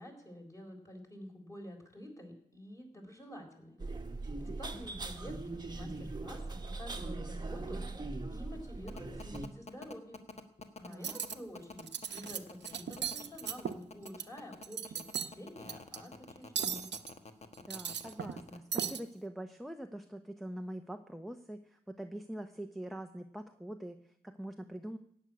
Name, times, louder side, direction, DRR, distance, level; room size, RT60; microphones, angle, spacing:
voice 1, 0.0-3.8 4.4-8.0 8.3-10.2 10.8-16.9, equal, 15° left, 2 dB, 4.0 m, -49 dB
sound 1, 3.8-9.5, right 2 dB, 25° right, 1.3 m, -40 dB
voice 2, 4.7-5.1 10.9-11.2 17.6-25.0, right 1 dB, ahead, 6 dB, 0.8 m, -44 dB
sound 2, 8.9-18.6, left 3 dB, 35° left, 1.4 m, -48 dB
Cutlery silverware, 10.9-11.3 11.8-12.4 12.6-14.2 14.6-15.3 15.7-16.0 16.6-17.1 17.5-18.4 18.7-19.0, right 8 dB, 75° right, 0.9 m, -37 dB
16.0 x 6.4 x 9.7 m, 0.72 s
wide cardioid pair, 115°, 18 cm